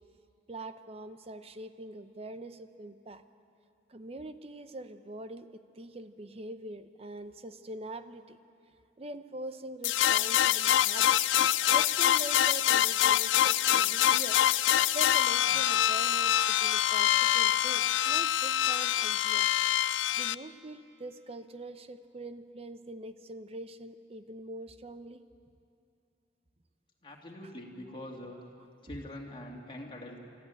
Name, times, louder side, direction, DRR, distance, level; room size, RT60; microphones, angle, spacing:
voice 1, 0.5-3.2 3.9-8.4 9.0-14.4 14.9-19.5 19.9-25.2, right 1 dB, 30° right, 11 dB, 0.7 m, -43 dB
sound 1, 9.8-20.4, left 12 dB, 85° left, 0.4 m, -25 dB
voice 2, 27.0-28.4 28.8-30.2, left 1 dB, 25° left, -1 dB, 2.3 m, -44 dB
25.0 x 13.5 x 9.0 m, 2.7 s
head